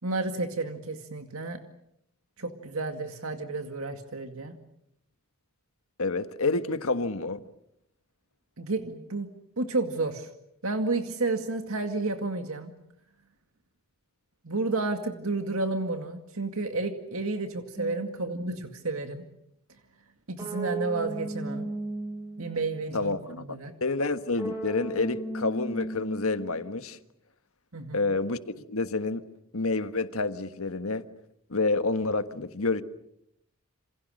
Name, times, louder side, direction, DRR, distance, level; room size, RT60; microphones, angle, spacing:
voice 1, 0.0-1.6 2.4-4.6 8.6-9.3 9.6-10.3 10.6-12.7 14.4-19.2 20.3-21.7 22.4-23.7 27.7-28.1, right 3 dB, 70° right, 2.1 m, -31 dB
voice 2, 6.0-7.4 22.9-23.4 23.8-27.0 27.9-29.2 29.5-31.0 31.5-32.8, left 3 dB, 70° left, 1.5 m, -28 dB
sound 1, 17.8-18.8 20.4-22.8 24.4-26.8, right 2 dB, 15° right, 7.1 m, -36 dB
28.0 x 27.5 x 6.5 m
head